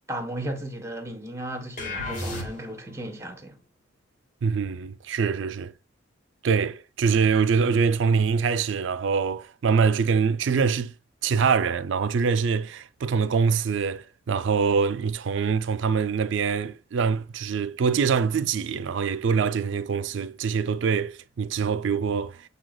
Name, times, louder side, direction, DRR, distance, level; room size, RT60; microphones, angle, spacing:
voice 1, 0.1-3.6, right 1 dB, 15° right, 0.6 m, -35 dB
sound 1, 1.8-2.9, left 2 dB, 40° left, 1.2 m, -33 dB
voice 2, 4.4-5.7 6.4-10.9 11.2-22.5, right 5 dB, 60° right, 0.3 m, -24 dB
7.4 x 2.8 x 2.3 m
head